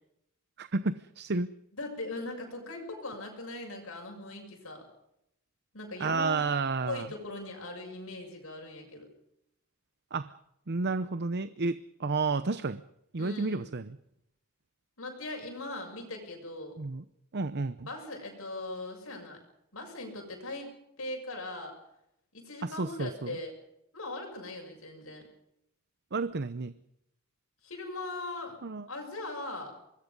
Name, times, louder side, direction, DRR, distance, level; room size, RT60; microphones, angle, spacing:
voice 1, 0.6-1.5 6.0-7.1 10.1-10.3 10.7-12.8 13.1-13.9 16.8-17.0 17.3-17.9 22.6-23.4 26.1-26.8 28.6-28.9, right 3 dB, 50° right, 13 dB, 0.8 m, -31 dB
voice 2, 1.8-4.8 5.7-6.4 6.9-9.1 13.2-13.7 15.0-16.8 17.8-19.4 19.7-21.7 22.3-23.5 23.9-25.3 27.6-28.6 28.9-29.8, left 2 dB, 70° left, 1 dB, 6.9 m, -40 dB
25.5 x 21.0 x 5.4 m, 0.79 s
head